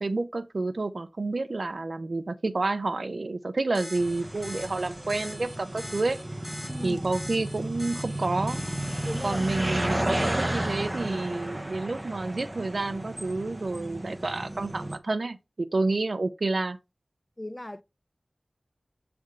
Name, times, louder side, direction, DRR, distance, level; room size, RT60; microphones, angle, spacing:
voice 1, 0.0-6.2 6.8-8.6 9.2-16.8, right 3 dB, 75° right, 0.5 m, -29 dB
sound 1, 3.7-10.9, left 1 dB, 45° left, 2.2 m, -44 dB
sound 2, 4.0-15.0, right 1 dB, 20° right, 0.8 m, -33 dB
voice 2, 6.7-7.0 9.1-9.4 9.7-9.9 17.4-17.8, left 1 dB, 25° left, 0.4 m, -37 dB
7.6 x 3.4 x 3.6 m
wide cardioid pair, 45°, 0 cm